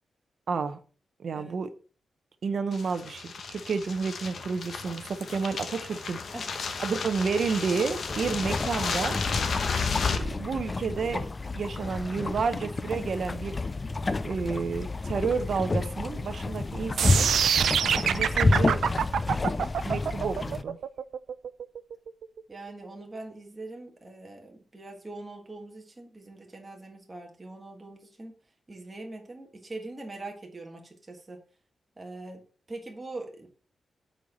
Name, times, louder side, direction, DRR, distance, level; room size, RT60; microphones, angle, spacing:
voice 1, 0.5-0.8 1.2-1.7 2.4-6.3 6.8-9.2 10.1-11.3 11.5-13.6 14.2-17.3 18.0-18.9 19.8-20.8, right 5 dB, 55° right, 0.7 m, -30 dB
sound 1, 2.7-10.2, left 5 dB, 55° left, 1.0 m, -32 dB
sound 2, 8.1-20.6, left 3 dB, 25° left, 0.4 m, -30 dB
sound 3, 17.0-23.0, right 8 dB, 85° right, 0.4 m, -26 dB
voice 2, 22.5-28.3 28.7-31.4 32.0-32.4 32.7-33.5, right 2 dB, 20° right, 1.4 m, -42 dB
7.6 x 4.4 x 5.4 m
wide cardioid pair, 160°, 0 cm